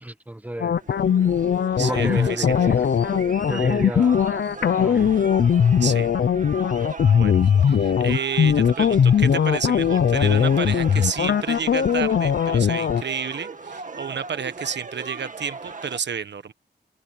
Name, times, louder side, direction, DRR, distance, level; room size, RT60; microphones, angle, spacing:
voice 1, 0.0-0.8 1.8-2.9 3.5-4.2 4.8-5.1, right 1 dB, 10° right, 0.9 m, -31 dB
sound 1, 0.6-13.0, left 8 dB, 70° left, 0.6 m, -20 dB
sound 2, 0.7-16.0, right 4 dB, 45° right, 2.0 m, -37 dB
voice 2, 1.8-2.5 5.8-6.1 7.1-7.3 7.7-16.5, right 7 dB, 75° right, 1.3 m, -30 dB
wide cardioid pair, 95°, 18 cm